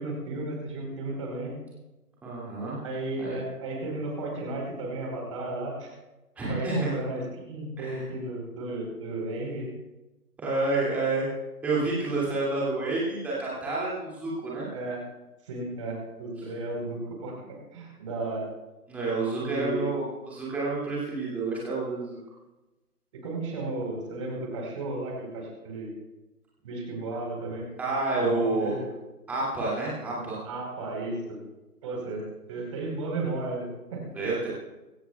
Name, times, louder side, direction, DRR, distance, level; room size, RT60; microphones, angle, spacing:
voice 1, 0.0-1.5 2.8-5.9 6.5-9.7 14.7-15.0 15.5-18.5 19.4-19.9 23.1-26.0 26.6-27.7 28.2-28.9 30.4-31.4 31.8-32.2 32.5-34.0, right 2 dB, 20° right, 0 dB, 4.2 m, -34 dB
voice 2, 2.2-2.8 3.2-3.4 6.4-6.9 7.8-8.0 10.4-11.3 11.6-14.7 18.9-22.2 27.8-28.8 29.3-30.4 34.1-34.5, right 3 dB, 5° right, -7 dB, 2.5 m, -29 dB
25.5 x 13.5 x 2.4 m, 1.1 s
figure-of-eight pair, 155°, 46 cm